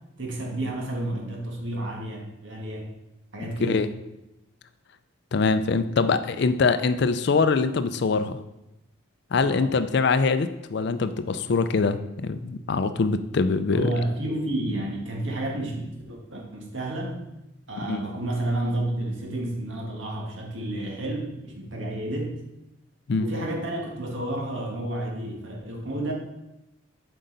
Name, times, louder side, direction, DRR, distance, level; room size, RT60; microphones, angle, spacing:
voice 1, 0.2-2.9 3.3-3.9 9.4-9.7 13.7-17.2 17.7-22.4 23.2-26.1, right 1 dB, 70° right, -1 dB, 1.7 m, -31 dB
voice 2, 5.3-8.4 9.3-13.9 17.9-18.0 23.1-23.3, left 4 dB, 55° left, 11 dB, 0.4 m, -23 dB
7.6 x 5.4 x 4.0 m, 0.91 s
head